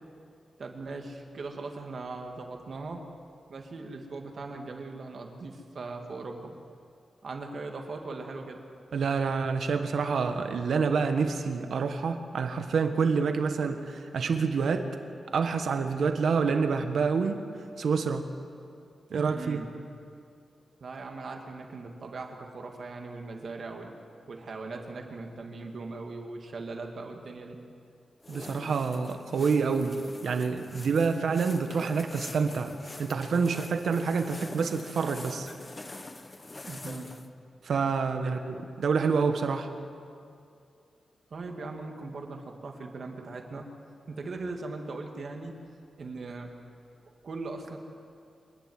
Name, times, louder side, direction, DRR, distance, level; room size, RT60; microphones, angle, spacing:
voice 1, 0.6-3.0 3.5-6.5 7.2-8.6 19.3-19.7 20.8-24.0 24.3-27.6 36.7-37.1 38.2-38.4 41.3-43.7 44.1-45.5 46.0-46.5 47.2-47.8, right 3 dB, 50° right, 3 dB, 2.1 m, -39 dB
voice 2, 8.9-14.9 15.3-17.4 17.8-18.2 19.1-19.6 28.3-32.7 33.0-35.5 37.6-39.7, right 5 dB, 70° right, 7 dB, 1.4 m, -27 dB
sound 1, 28.2-37.3, left 2 dB, 20° left, 0.9 m, -45 dB
26.0 x 11.0 x 9.6 m, 2.4 s
wide cardioid pair, 165°, 0 cm